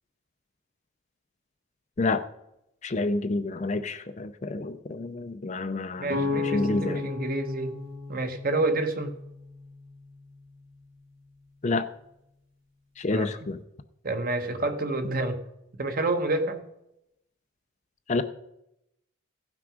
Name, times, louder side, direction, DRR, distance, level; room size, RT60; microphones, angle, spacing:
voice 1, 2.8-7.0 11.6-11.8 13.0-13.6 18.1-18.2, left 3 dB, 35° left, 10 dB, 0.5 m, -29 dB
voice 2, 6.0-7.8 8.1-9.2 13.1-13.3 14.0-15.4 15.8-16.6, right 2 dB, 40° right, 7 dB, 1.0 m, -28 dB
sound 1, 6.1-9.9, left 3 dB, 70° right, 3.0 m, -33 dB
16.0 x 6.0 x 5.0 m, 0.83 s
head